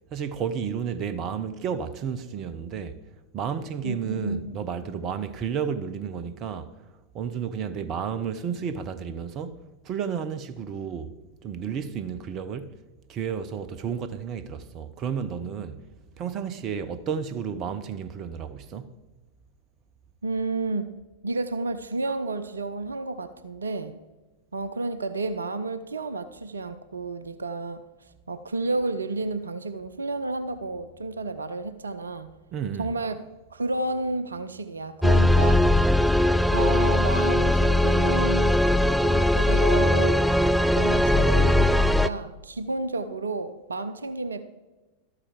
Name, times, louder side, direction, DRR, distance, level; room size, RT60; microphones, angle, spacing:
voice 1, 0.1-3.0 3.3-6.7 7.1-9.6 9.8-12.8 13.1-15.8 16.2-18.9 32.5-32.9, right 7 dB, 35° right, 0.7 m, -32 dB
voice 2, 3.8-4.6 20.2-20.9 21.2-23.9 24.5-27.8 28.3-32.3 32.8-33.2 33.5-35.9 36.5-38.6 39.0-40.3 40.7-44.4, right 3 dB, 75° right, 0.6 m, -31 dB
sound 1, 35.0-42.1, left 1 dB, ahead, 0.3 m, -20 dB
12.5 x 8.6 x 4.9 m
figure-of-eight pair, 90°, 0 cm